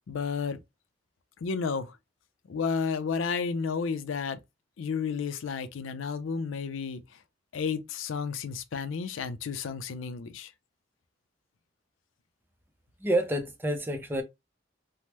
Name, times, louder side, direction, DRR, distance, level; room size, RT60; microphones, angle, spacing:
voice 1, 0.1-0.6 1.4-2.0 2.5-4.4 4.8-7.0 7.5-10.5, left 5 dB, 80° left, 0.4 m, -32 dB
voice 2, 13.0-14.2, right 1 dB, 10° right, 0.5 m, -28 dB
3.4 x 2.0 x 2.9 m
head